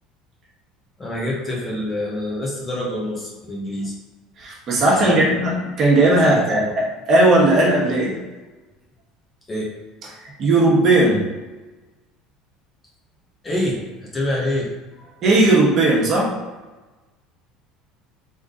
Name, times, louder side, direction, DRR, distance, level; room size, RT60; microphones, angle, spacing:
voice 1, 1.0-3.9 5.0-5.2 6.2-6.7 9.5-9.7 13.4-14.7 15.0-15.1, left 1 dB, 25° left, -3 dB, 1.4 m, -26 dB
voice 2, 4.4-8.2 10.4-11.2 15.2-16.3, right 2 dB, 45° right, -3 dB, 1.5 m, -17 dB
3.7 x 3.5 x 3.9 m, 1.2 s
supercardioid pair, 105°, 0 cm